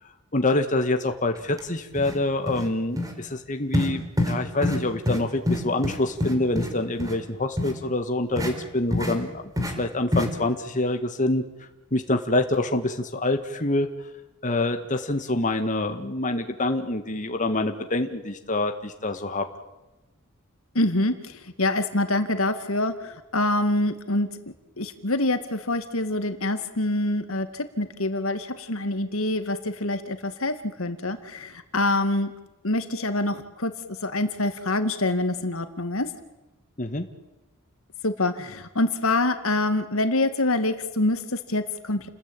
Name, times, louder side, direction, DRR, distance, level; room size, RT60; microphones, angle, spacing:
voice 1, 0.3-9.4 9.7-11.4 11.9-13.9 14.4-19.5 36.8-37.1, left 2 dB, 35° left, 6 dB, 1.8 m, -26 dB
sound 1, 1.5-1.6 2.0-2.2 2.5-2.7 3.0-3.1 3.7-3.9 4.2-4.4 4.6-4.8 5.1-5.2 5.5-6.7 7.0-7.2 7.6-7.7 8.4-8.5 8.9-9.2 9.6-9.7 10.1-10.3, left 1 dB, 15° right, 4.3 m, -25 dB
voice 2, 20.7-24.3 24.8-32.3 32.6-36.1 38.0-42.1, left 2 dB, 70° left, 9 dB, 2.2 m, -26 dB
29.5 x 20.5 x 9.1 m, 1.0 s
head